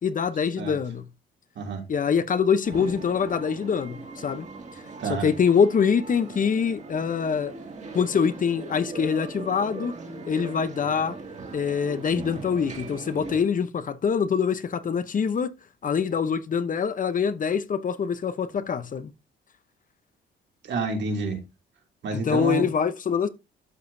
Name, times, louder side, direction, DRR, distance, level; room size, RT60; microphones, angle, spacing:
voice 1, 0.0-1.0 1.9-4.5 5.2-7.5 7.9-9.9 10.3-11.1 11.5-15.5 15.8-19.1 22.1-23.3, left 6 dB, 40° left, 0.8 m, -24 dB
voice 2, 1.6-1.9 5.0-5.3 20.6-21.4 22.0-22.7, right 4 dB, 65° right, 2.7 m, -29 dB
sound 1, 2.6-13.4, right 3 dB, 35° right, 2.1 m, -40 dB
12.0 x 5.0 x 2.7 m
cardioid pair, 90°, 20 cm